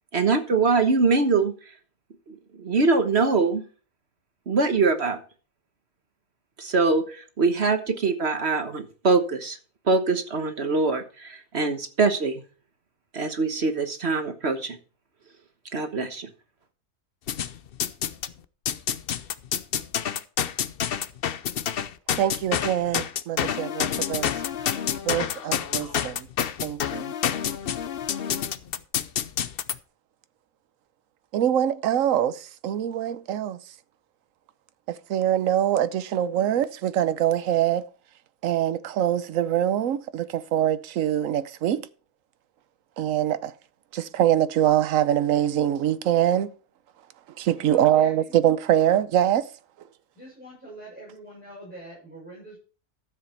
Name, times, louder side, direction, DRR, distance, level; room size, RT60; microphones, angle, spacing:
voice 1, 0.1-1.5 2.3-3.6 4.5-5.2 6.6-9.6 9.9-12.4 13.1-14.8 15.7-16.3, right 4 dB, 45° right, 1.4 m, -23 dB
sound 1, 17.3-18.3 18.7-29.7, left 9 dB, 55° left, 0.6 m, -28 dB
voice 2, 22.2-24.3 24.7-24.8 25.0-26.3 26.6-27.1 31.3-33.6 34.9-37.8 38.4-41.9 43.0-43.5 43.9-46.5 47.4-49.5, right 11 dB, 65° right, 1.1 m, -24 dB
voice 3, 47.7-48.3 50.2-52.6, right 1 dB, 5° right, 7.1 m, -43 dB
13.0 x 7.8 x 4.4 m
omnidirectional pair, 1.7 m